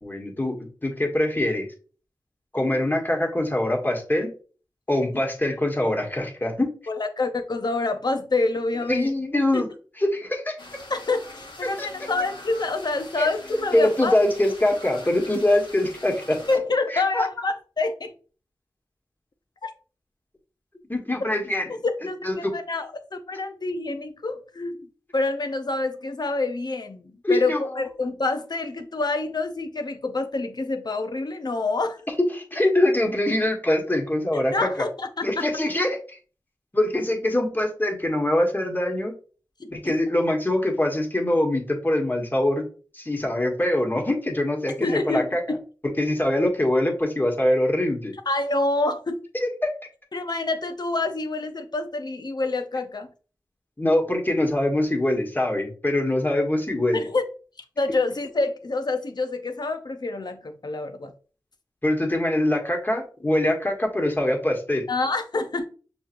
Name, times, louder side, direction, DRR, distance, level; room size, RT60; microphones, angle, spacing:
voice 1, 0.0-1.7 2.5-4.3 4.9-6.7 8.9-9.7 10.0-10.6 11.6-11.9 13.2-13.3 13.7-16.4 16.9-17.2 20.9-21.6 22.2-22.5 27.2-27.6 32.3-34.9 35.2-36.2 36.7-39.1 39.7-42.7 42.9-45.4 46.0-48.1 49.4-49.5 53.8-57.0 61.8-64.8, left 1 dB, 25° left, 2 dB, 1.4 m, -23 dB
voice 2, 6.9-9.1 9.5-9.6 10.9-14.2 16.5-18.1 19.6-19.7 21.8-24.9 25.1-32.0 34.3-35.5 39.6-39.9 44.8-45.6 48.3-49.3 50.1-53.1 56.9-57.2 57.8-61.1 64.9-65.7, left 3 dB, 60° left, 7 dB, 0.7 m, -27 dB
sound 1, 10.6-16.6, left 2 dB, 75° left, 1.1 m, -43 dB
6.2 x 3.0 x 2.5 m, 0.40 s
cardioid pair, 45°, 8 cm